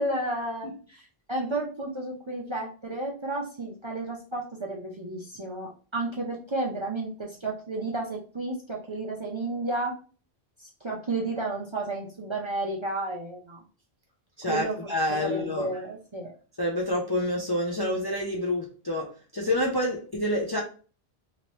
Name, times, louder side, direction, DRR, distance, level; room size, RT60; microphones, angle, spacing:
voice 1, 0.0-10.0 10.6-13.6 14.5-14.9 15.2-16.3, right 2 dB, 35° right, -2 dB, 0.5 m, -32 dB
voice 2, 14.4-15.7 16.6-20.6, left 1 dB, 30° left, 0 dB, 0.5 m, -28 dB
2.9 x 2.8 x 3.0 m, 0.37 s
omnidirectional pair, 1.1 m